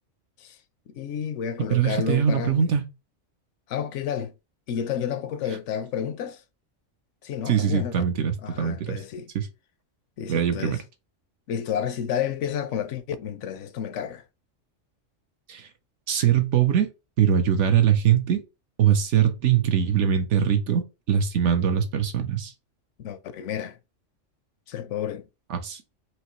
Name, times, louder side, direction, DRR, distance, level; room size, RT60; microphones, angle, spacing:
voice 1, 0.9-2.7 3.7-4.3 4.7-6.4 7.2-7.9 8.4-9.3 10.2-10.8 11.5-14.2 23.0-23.8 24.7-25.2, left 8 dB, 75° left, 0.9 m, -31 dB
voice 2, 1.7-2.8 7.5-9.0 9.3-9.5 10.3-10.8 15.5-15.7 16.1-16.9 17.2-18.4 18.8-22.5 25.5-25.8, right 8 dB, 70° right, 1.0 m, -22 dB
4.7 x 2.9 x 3.0 m
omnidirectional pair, 1.3 m